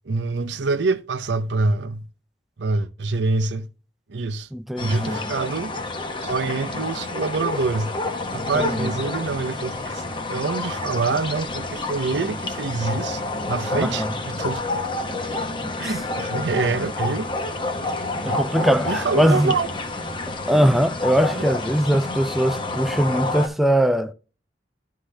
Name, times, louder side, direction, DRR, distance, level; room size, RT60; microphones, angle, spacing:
voice 1, 0.1-2.1 2.6-3.7 4.1-4.5 4.8-5.7 6.2-7.9 8.3-10.0 10.3-13.2 13.5-14.8 15.8-17.3 18.2-19.7 21.3-21.5, right 3 dB, 80° right, 0.7 m, -25 dB
voice 2, 4.5-5.2 8.4-8.9 13.8-14.1 15.6-15.9 18.2-19.6 20.5-24.1, equal, ahead, 0.3 m, -21 dB
sound 1, 4.8-23.5, left 2 dB, 30° left, 0.9 m, -29 dB
11.5 x 3.8 x 3.3 m
head